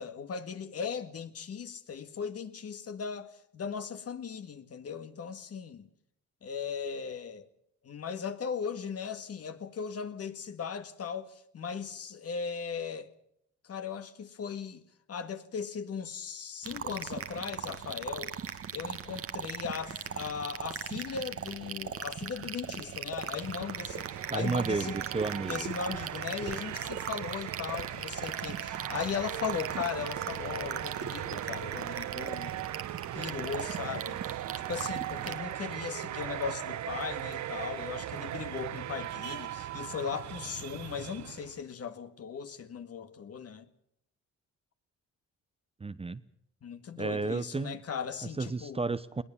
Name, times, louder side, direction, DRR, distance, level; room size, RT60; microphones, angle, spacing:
voice 1, 0.0-5.9 6.4-7.5 7.8-13.1 13.6-14.8 15.1-18.3 18.7-25.0 25.5-32.7 33.1-34.4 34.7-43.7 46.6-48.8, left 6 dB, 50° left, 2.0 m, -38 dB
sound 1, 16.6-35.4, right 7 dB, 50° right, 1.5 m, -39 dB
sound 2, 23.1-41.6, right 12 dB, 65° right, 0.9 m, -39 dB
voice 2, 24.3-25.7 45.8-46.2 47.0-47.8 48.4-49.2, right 4 dB, 20° right, 0.8 m, -32 dB
21.5 x 18.5 x 7.1 m
cardioid pair, 90°, 30 cm